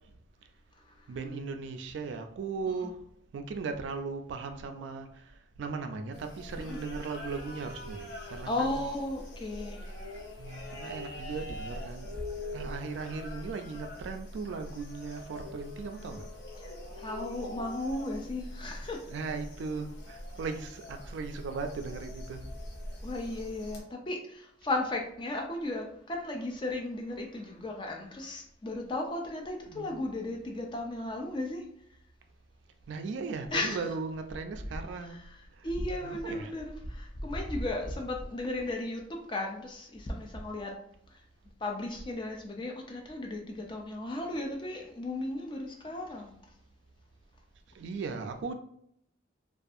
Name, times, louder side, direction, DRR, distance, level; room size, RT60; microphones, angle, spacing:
voice 1, 1.1-3.0 3.3-5.2 5.6-8.8 10.4-12.1 12.5-16.3 19.1-22.4 29.7-29.9 32.9-35.2 36.0-36.5 47.7-48.5, right 4 dB, 70° right, 0.3 m, -37 dB
sound 1, 6.1-23.8, left 1 dB, 65° left, 0.6 m, -43 dB
voice 2, 8.5-9.9 16.6-19.2 23.0-31.6 33.5-33.8 35.0-35.2 35.6-40.7 41.1-41.2 41.6-46.3, left 2 dB, 25° left, 0.3 m, -35 dB
2.6 x 2.3 x 2.4 m
head